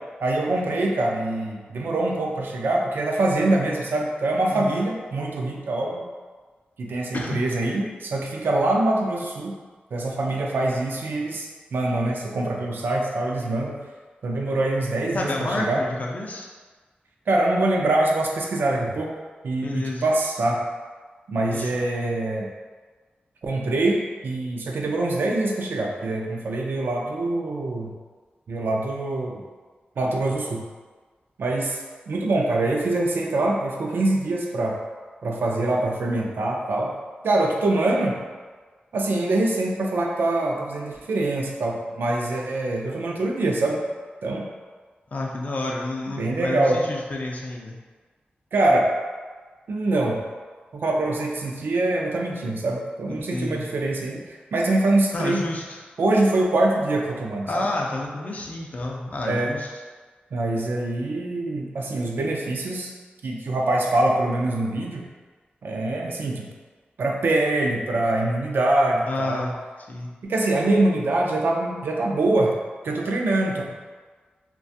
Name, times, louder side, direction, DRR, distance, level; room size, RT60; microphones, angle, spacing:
voice 1, 0.2-6.0 6.8-9.6 9.9-13.8 14.2-15.8 17.3-19.1 19.4-20.6 21.3-22.5 23.4-24.0 24.2-27.9 28.5-29.4 30.0-30.6 31.4-31.8 32.1-34.8 35.2-36.9 37.2-38.2 38.9-43.8 44.2-44.5 46.1-46.8 48.5-48.9 49.7-50.2 50.7-55.4 56.0-57.7 59.3-59.5 60.3-62.9 63.2-65.0 65.6-66.5 67.0-69.5 70.2-72.6 72.8-73.7, right 2 dB, 75° right, 0 dB, 0.4 m, -24 dB
voice 2, 4.5-4.9 7.1-7.4 15.1-16.5 19.6-20.1 21.5-21.8 45.1-47.7 53.3-53.6 55.1-55.8 57.5-59.7 69.1-69.6 69.9-70.1, left 2 dB, 45° left, -1 dB, 0.4 m, -30 dB
2.4 x 2.2 x 2.6 m, 1.4 s
wide cardioid pair, 95°, 4 cm